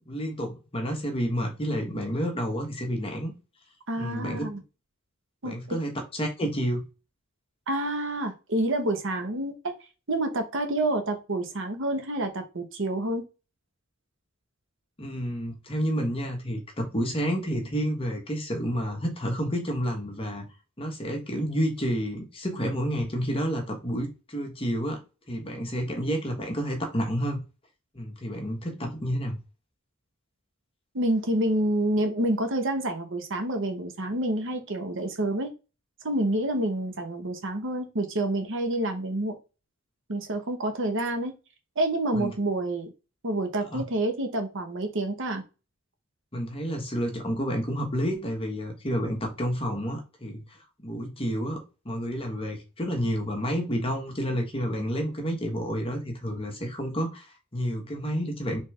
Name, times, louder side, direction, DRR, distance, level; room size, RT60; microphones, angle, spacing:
voice 1, 0.1-3.3 4.0-4.4 5.4-6.8 15.0-20.4 20.8-25.0 25.3-27.4 27.9-29.4 42.1-42.3 43.7-43.8 46.3-58.6, equal, 25° left, 2 dB, 1.2 m, -30 dB
voice 2, 3.9-4.6 5.4-5.8 7.7-9.7 10.1-13.2 30.9-35.5 36.0-39.4 40.1-41.3 41.8-42.9 43.2-45.4, right 1 dB, 65° right, 5 dB, 1.0 m, -28 dB
4.3 x 3.4 x 3.3 m, 0.30 s
head